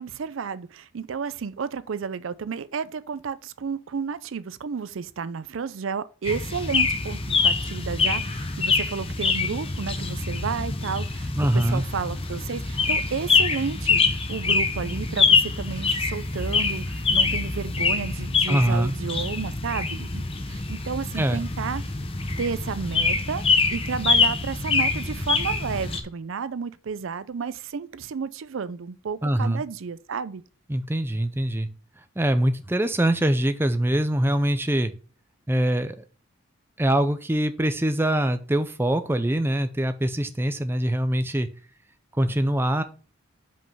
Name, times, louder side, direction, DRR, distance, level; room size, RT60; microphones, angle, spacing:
voice 1, 0.0-21.8 22.4-23.4 23.7-30.4, right 6 dB, 70° right, 0.4 m, -32 dB
sound 1, 6.2-26.0, left 4 dB, 25° left, 0.8 m, -25 dB
voice 2, 11.4-11.8 18.5-18.9 21.1-21.4 29.2-29.6 30.7-31.7 32.2-34.9 35.5-36.0 36.8-41.5 42.1-42.8, right 1 dB, 10° right, 0.5 m, -23 dB
5.4 x 5.3 x 5.5 m
head